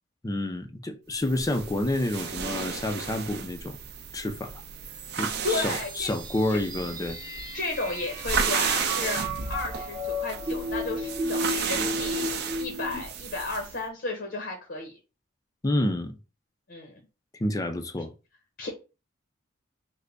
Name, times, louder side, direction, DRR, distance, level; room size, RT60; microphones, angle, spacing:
voice 1, 0.2-3.8 4.1-4.5 5.2-7.2 15.6-16.2 17.4-18.1, left 1 dB, 20° left, 0.4 m, -29 dB
sound 1, 1.2-13.8, right 6 dB, 55° right, 0.5 m, -33 dB
sound 2, 4.9-13.0, left 1 dB, 25° right, 0.8 m, -34 dB
voice 2, 5.4-6.1 6.5-6.6 7.5-9.2 9.5-14.9 16.7-17.0 18.6-18.7, left 3 dB, 55° left, 0.7 m, -33 dB
3.3 x 2.1 x 3.8 m
head